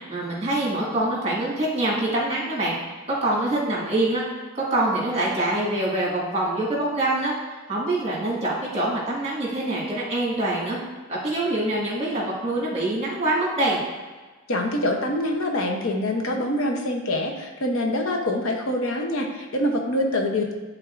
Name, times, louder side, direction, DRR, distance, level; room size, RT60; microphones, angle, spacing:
voice 1, 0.0-2.8 3.1-4.3 4.5-7.3 7.7-10.8 11.1-13.8, right 1 dB, 30° right, -5 dB, 1.8 m, -25 dB
voice 2, 14.5-20.5, left 1 dB, 65° left, 2 dB, 0.8 m, -25 dB
11.0 x 3.7 x 2.5 m, 1.3 s
head